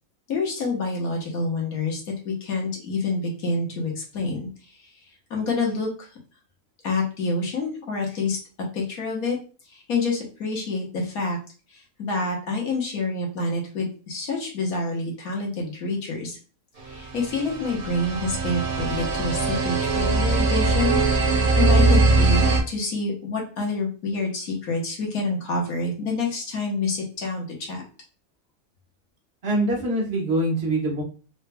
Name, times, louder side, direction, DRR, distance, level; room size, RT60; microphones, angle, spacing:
voice 1, 0.3-2.0 2.2-4.5 5.3-6.1 6.8-8.4 8.7-9.4 9.7-11.4 11.7-16.4 16.9-22.4 22.7-27.8, left 3 dB, 90° left, -1 dB, 1.6 m, -27 dB
sound 1, 17.2-22.6, right 3 dB, 80° right, 1.4 m, -21 dB
voice 2, 29.4-31.0, right 1 dB, 45° right, -1 dB, 1.3 m, -24 dB
3.9 x 3.3 x 2.2 m, 0.37 s
omnidirectional pair, 1.5 m